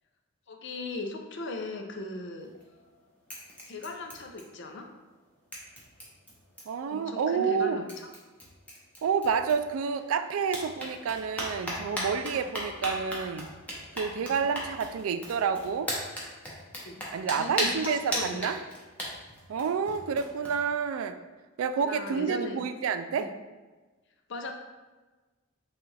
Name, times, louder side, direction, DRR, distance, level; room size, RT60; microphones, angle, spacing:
voice 1, 0.5-2.5 3.7-4.9 6.9-8.1 12.3-12.5 14.2-14.3 16.8-17.1 17.4-18.5 21.8-22.7 23.2-23.3 24.3-24.5, left 2 dB, 60° left, 4 dB, 0.6 m, -38 dB
sound 1, 2.4-2.9 3.3-4.8 5.1-5.2 5.5-6.9 7.6-7.7 7.9-10.0 10.4-20.5, equal, 5° left, 0.8 m, -37 dB
voice 2, 6.7-7.9 9.0-13.5 13.9-15.9 17.1-18.6 19.5-21.2 21.6-23.3, right 6 dB, 80° right, 10 dB, 0.3 m, -29 dB
6.1 x 2.4 x 3.2 m, 1.2 s
head